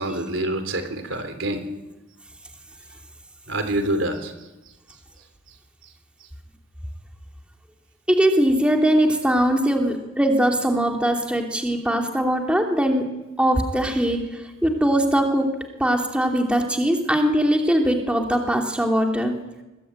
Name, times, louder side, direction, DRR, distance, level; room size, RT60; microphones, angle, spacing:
voice 1, 0.0-1.6 3.5-4.3, right 1 dB, 75° right, 8 dB, 3.6 m, -26 dB
voice 2, 8.1-13.1 13.4-14.2 14.6-15.5 15.8-19.4, equal, 5° right, 2 dB, 2.8 m, -21 dB
23.0 x 21.5 x 9.0 m, 1.0 s
head